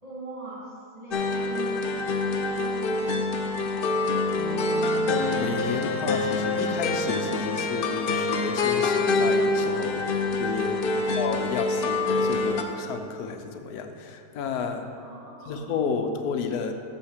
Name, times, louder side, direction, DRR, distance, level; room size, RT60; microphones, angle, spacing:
voice 1, 0.0-4.5 10.9-11.1 14.9-15.7, right 1 dB, 20° right, -7 dB, 2.1 m, -41 dB
sound 1, 1.1-12.6, left 3 dB, 90° left, 0.4 m, -26 dB
sound 2, 4.4-8.2, right 2 dB, 90° right, 1.6 m, -39 dB
voice 2, 5.1-10.9 11.1-14.9 15.5-16.7, left 6 dB, 70° left, 5 dB, 1.2 m, -31 dB
6.5 x 6.0 x 6.4 m, 2.5 s
omnidirectional pair, 1.7 m